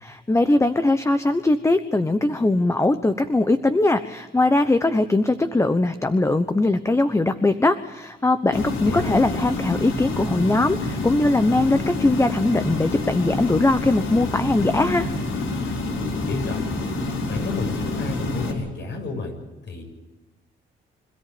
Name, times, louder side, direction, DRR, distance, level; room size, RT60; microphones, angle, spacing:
voice 1, 0.0-15.1, left 2 dB, 15° left, 10 dB, 1.1 m, -21 dB
sound 1, 8.5-18.5, left 2 dB, 80° left, 4.6 m, -27 dB
voice 2, 16.1-16.7 17.3-19.3 19.7-19.8, left 3 dB, 65° left, 4 dB, 7.5 m, -31 dB
26.0 x 14.0 x 8.8 m, 1.2 s
cardioid pair, 90°, 20 cm